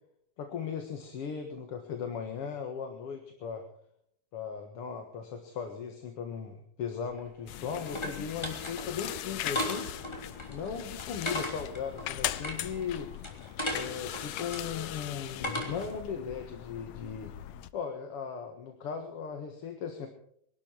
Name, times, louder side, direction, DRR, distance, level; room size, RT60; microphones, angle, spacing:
voice 1, 0.4-3.7 4.3-9.9 10.5-13.1 13.7-17.3 17.7-20.1, left 7 dB, 55° left, 5 dB, 2.3 m, -37 dB
sound 1, 7.0-16.0, left 1 dB, 10° left, 3.0 m, -38 dB
sound 2, 7.5-17.7, left 12 dB, 70° left, 1.5 m, -39 dB
24.0 x 12.0 x 4.6 m, 0.68 s
omnidirectional pair, 3.4 m